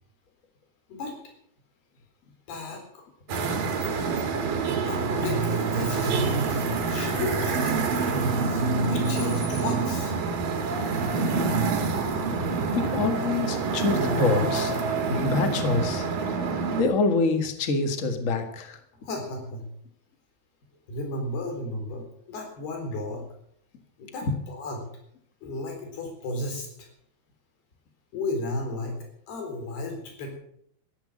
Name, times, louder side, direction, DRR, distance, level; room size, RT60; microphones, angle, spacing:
voice 1, 2.5-3.0 4.9-10.2 18.9-19.7 20.9-23.2 24.0-24.9 25.4-26.9 28.1-30.3, left 2 dB, 80° left, 3 dB, 6.0 m, -34 dB
sound 1, 3.3-16.8, right 4 dB, 60° right, 3.7 m, -26 dB
voice 2, 12.7-14.7 15.1-16.1 16.8-18.8, left 3 dB, 40° left, 7 dB, 1.0 m, -26 dB
14.0 x 10.5 x 8.7 m, 0.69 s
omnidirectional pair, 4.5 m